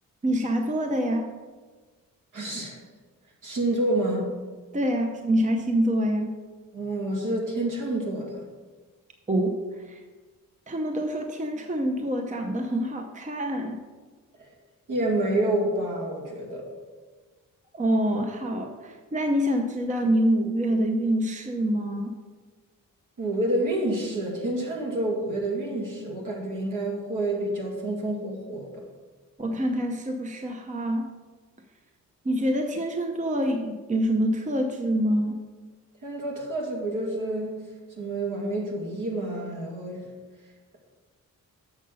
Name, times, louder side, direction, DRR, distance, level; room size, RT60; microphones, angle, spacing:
voice 1, 0.2-1.3 4.7-6.3 9.3-9.6 9.8-10.0 10.7-13.8 17.7-22.1 29.4-31.1 32.2-35.4, equal, 20° right, 4 dB, 0.8 m, -26 dB
voice 2, 2.3-2.8 3.4-4.3 6.7-8.4 14.4-14.5 14.9-16.6 23.2-28.7 36.0-37.6 38.0-40.1, right 1 dB, 65° right, -2 dB, 2.4 m, -28 dB
7.2 x 6.5 x 5.4 m, 1.4 s
cardioid pair, 85°, 33 cm